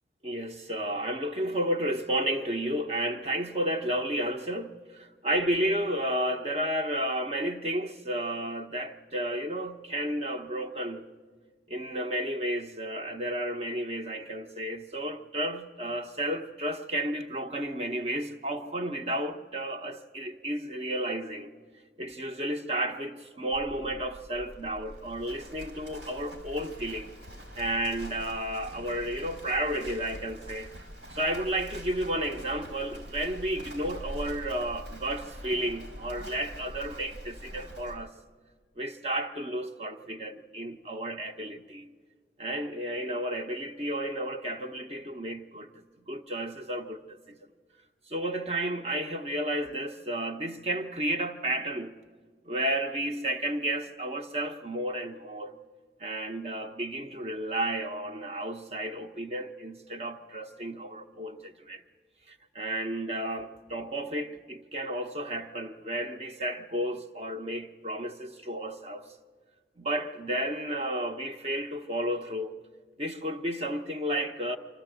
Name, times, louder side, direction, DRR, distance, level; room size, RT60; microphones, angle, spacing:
voice 1, 0.2-11.1 11.7-21.5 22.0-27.1 27.6-30.7 31.1-38.1 38.8-41.9 42.4-45.7 46.1-47.4 48.1-51.9 52.4-55.5 56.0-61.8 62.3-69.1 69.8-72.5 73.0-74.6, right 1 dB, 35° right, 0.8 m, -32 dB
Livestock farm animals working animals, 23.5-37.9, equal, 90° right, 4.4 m, -44 dB
25.0 x 14.0 x 7.8 m
head